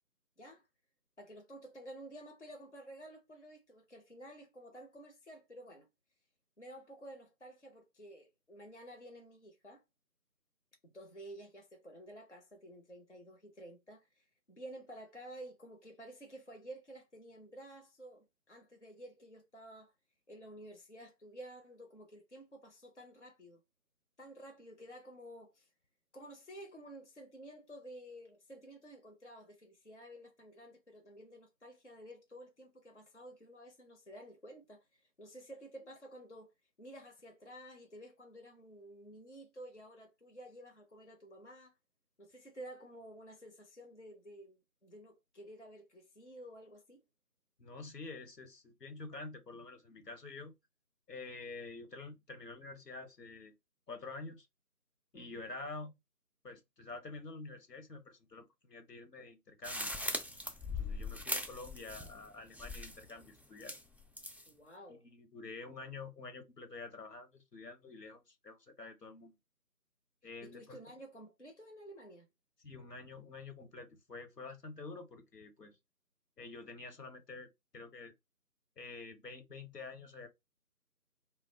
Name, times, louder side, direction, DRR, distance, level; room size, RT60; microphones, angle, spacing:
voice 1, 1.2-5.9 6.6-9.8 10.8-19.9 20.3-23.6 24.2-25.7 26.1-36.5 36.8-41.8 42.2-44.6 44.8-47.0 55.1-55.3 64.5-65.1 70.4-72.3, right 1 dB, 50° left, 0.5 m, -52 dB
voice 2, 47.6-50.5 51.1-53.5 53.9-54.5 55.1-55.9 56.4-59.9 60.7-63.7 64.9-69.4 70.2-70.8 72.6-75.8 76.4-78.1 78.8-80.3, left 3 dB, 80° left, 0.9 m, -48 dB
sound 1, 59.6-62.3 62.5-63.1 63.6-64.5, left 2 dB, 5° right, 0.3 m, -40 dB
2.4 x 2.0 x 2.5 m
figure-of-eight pair, 170°, 47 cm